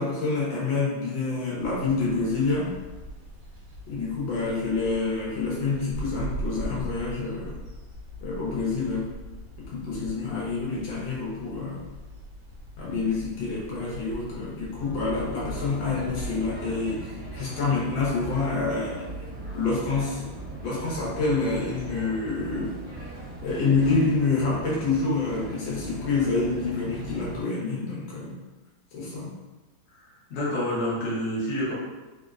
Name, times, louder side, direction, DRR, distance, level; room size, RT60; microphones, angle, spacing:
voice 1, 0.0-2.7 3.9-7.6 8.2-9.1 9.6-11.8 12.8-19.0 19.5-20.3 20.6-22.8 23.4-28.4 28.9-29.3, left 4 dB, 70° left, -6 dB, 1.5 m, -27 dB
sound 1, 1.6-16.3, right 1 dB, 70° right, 1.5 m, -41 dB
sound 2, 14.8-27.4, right 2 dB, 55° right, 1.2 m, -39 dB
voice 2, 30.0-31.7, equal, 50° left, -8 dB, 0.9 m, -28 dB
3.8 x 2.1 x 2.4 m, 1.2 s
omnidirectional pair, 2.2 m